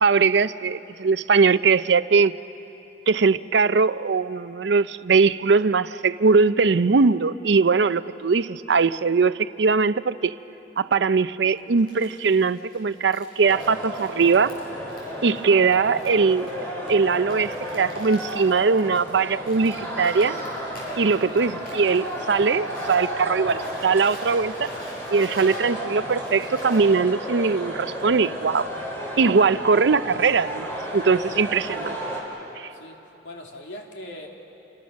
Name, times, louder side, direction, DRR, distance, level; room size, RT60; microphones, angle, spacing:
voice 1, 0.0-2.3 3.1-10.3 10.8-14.5 15.2-16.5 16.9-20.4 21.0-24.7 25.1-28.7 29.2-32.0 32.6-32.7, right 4 dB, 70° right, 14 dB, 0.5 m, -21 dB
Crumpling crinkling, 11.5-23.1 23.4-26.9, left 1 dB, 55° left, 7.8 m, -48 dB
sound 1, 13.4-32.2, equal, 15° left, 4.1 m, -33 dB
voice 2, 32.7-34.3, left 1 dB, 80° left, 1 dB, 2.6 m, -41 dB
28.5 x 23.0 x 6.4 m, 3.0 s
head